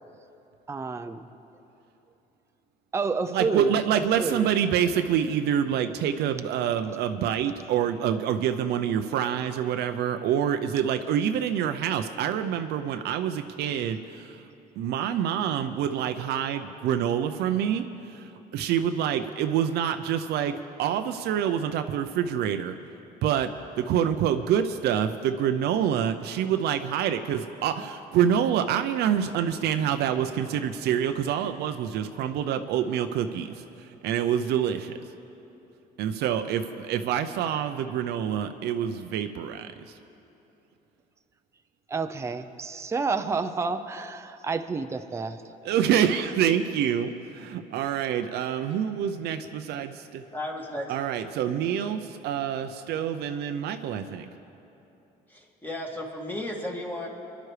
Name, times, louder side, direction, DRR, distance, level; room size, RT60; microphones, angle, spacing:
voice 1, 0.7-1.3 2.9-3.8 4.2-4.5 41.9-45.4, right 4 dB, 15° right, 8 dB, 0.5 m, -29 dB
voice 2, 3.3-14.4 14.8-22.7 23.2-23.5 23.8-33.5 33.8-34.9 36.0-39.7 45.6-50.2 50.9-54.3, right 9 dB, 75° right, 8 dB, 0.6 m, -26 dB
voice 3, 50.3-50.9 55.3-57.1, left 1 dB, 10° left, -1 dB, 2.2 m, -34 dB
25.0 x 11.5 x 3.3 m, 2.9 s
cardioid pair, 110°, 17 cm